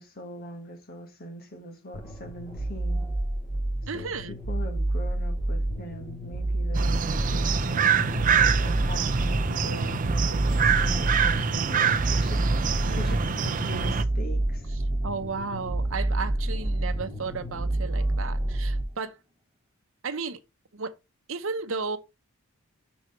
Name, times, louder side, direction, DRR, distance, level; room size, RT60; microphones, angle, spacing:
voice 1, 0.0-3.0 3.9-8.0 8.6-12.6 13.0-14.7, equal, 45° left, 1.8 m, -42 dB
sound 1, 1.9-18.8, right 1 dB, 25° left, 2.6 m, -29 dB
voice 2, 3.9-4.4 12.8-13.2 15.0-19.2 20.0-20.4 20.7-20.9 21.3-22.0, right 4 dB, 65° right, 0.8 m, -34 dB
sound 2, 6.7-14.0, right 6 dB, 40° right, 0.5 m, -25 dB
sound 3, 14.0-19.1, right 1 dB, 20° right, 1.0 m, -46 dB
6.3 x 4.5 x 5.7 m
head